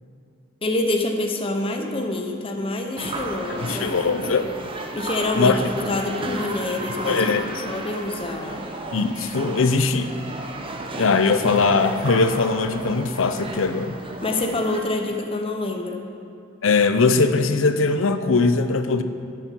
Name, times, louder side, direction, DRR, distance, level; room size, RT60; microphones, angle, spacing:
voice 1, 0.6-3.9 4.9-7.3 7.7-8.6 14.2-16.1, left 2 dB, 25° left, 3 dB, 0.7 m, -26 dB
sound 1, 3.0-14.8, right 2 dB, 25° right, 0.7 m, -34 dB
voice 2, 3.6-4.5 5.4-5.6 7.0-7.6 8.9-10.1 11.0-13.9 16.6-19.0, left 4 dB, 75° left, 9 dB, 0.6 m, -20 dB
12.0 x 7.3 x 5.4 m, 2.5 s
head